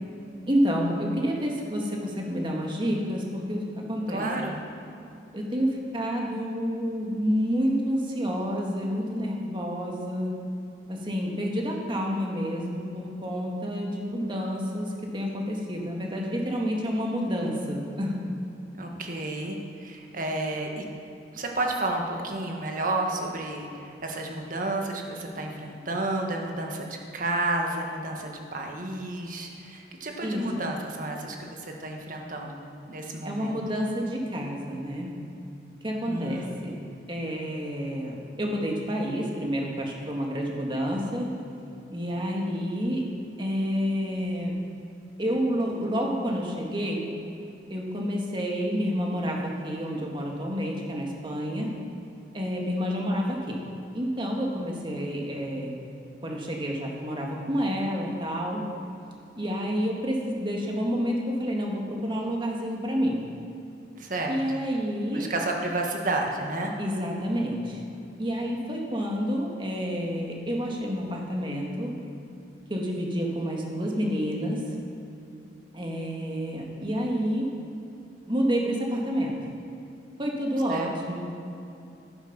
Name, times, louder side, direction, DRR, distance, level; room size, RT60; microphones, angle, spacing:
voice 1, 0.5-4.3 5.3-10.5 10.9-18.4 30.2-30.6 33.3-35.2 35.8-36.8 37.1-41.3 41.9-43.1 43.4-44.5 45.2-47.1 47.7-51.8 52.3-53.6 53.9-55.7 56.2-58.7 59.4-63.2 64.3-65.3 66.8-67.8 68.2-71.9 72.7-74.7 75.7-77.5 78.3-79.3 80.2-81.3, equal, 30° right, -1 dB, 1.9 m, -29 dB
voice 2, 4.1-4.6 18.7-20.8 21.3-32.6 32.9-33.5 36.1-36.6 64.0-64.4 65.1-66.7 80.7-80.9, right 2 dB, 50° right, 1 dB, 1.6 m, -31 dB
11.5 x 9.7 x 6.0 m, 2.8 s
head